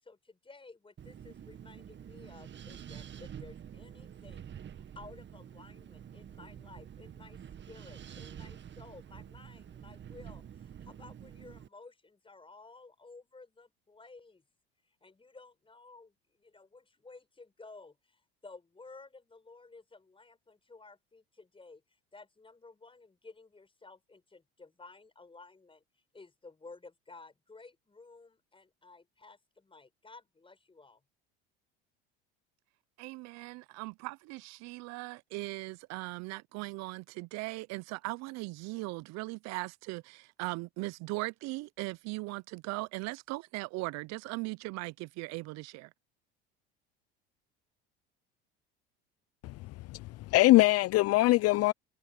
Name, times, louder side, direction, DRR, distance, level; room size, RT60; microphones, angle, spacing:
voice 1, 0.0-14.4 15.0-21.8 22.1-25.8 26.1-31.0, left 3 dB, 15° left, 6.3 m, -54 dB
Wind, 1.0-11.7, right 9 dB, 35° right, 2.0 m, -48 dB
voice 2, 33.0-45.9, right 23 dB, 60° right, 0.8 m, -39 dB
voice 3, 49.4-51.7, left 18 dB, 55° left, 0.7 m, -24 dB
hypercardioid pair, 80°, 30 cm